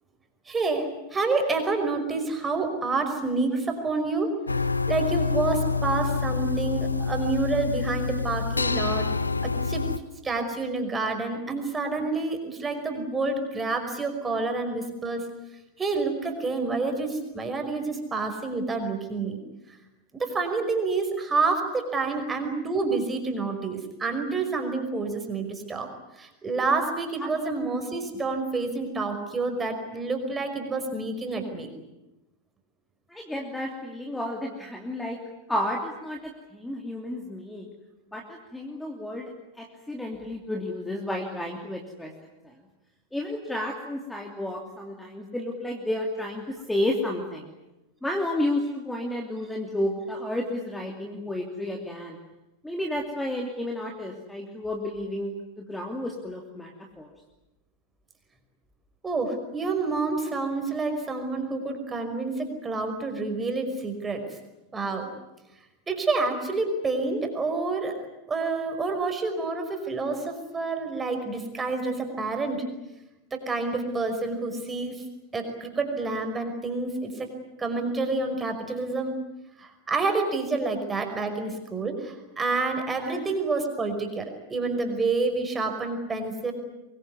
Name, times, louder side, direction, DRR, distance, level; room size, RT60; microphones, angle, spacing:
voice 1, 0.5-4.3 4.9-9.1 9.4-9.8 10.2-15.2 15.8-19.4 20.1-25.9 26.2-31.7 59.0-64.2 64.7-65.1 65.9-72.6 73.3-75.0 75.3-77.3 77.6-79.2 79.6-86.5, right 3 dB, 15° right, 5 dB, 5.4 m, -28 dB
sound 1, 4.5-10.0, left 4 dB, 80° left, 1.0 m, -27 dB
voice 2, 33.1-35.2 35.5-37.7 38.1-39.3 39.6-42.5 43.1-47.5 48.0-52.2 52.6-56.7 57.0-57.1 83.0-83.2, left 1 dB, 5° left, 1 dB, 2.9 m, -31 dB
23.5 x 23.0 x 9.7 m, 0.98 s
figure-of-eight pair, 90°, 0 cm